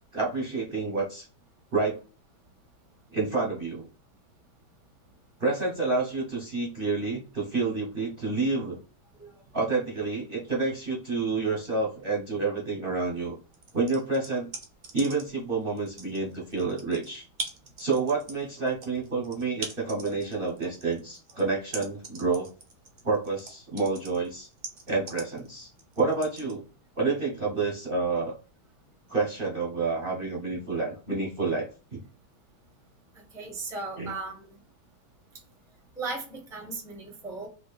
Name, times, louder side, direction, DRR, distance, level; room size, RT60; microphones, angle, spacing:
voice 1, 0.1-1.3 1.7-2.0 3.1-3.8 5.4-8.8 9.5-13.3 13.7-14.5 14.9-17.3 17.8-22.5 23.0-24.5 24.9-25.7 26.0-26.6 27.0-28.4 29.1-32.0 34.0-34.1, right 3 dB, 40° right, -4 dB, 0.8 m, -29 dB
sound 1, 13.5-15.4 15.8-26.5, right 3 dB, 80° right, 0.4 m, -41 dB
voice 2, 33.3-34.6 36.0-37.5, right 3 dB, 5° right, 1 dB, 0.6 m, -37 dB
4.1 x 2.8 x 2.4 m, 0.36 s
omnidirectional pair, 2.0 m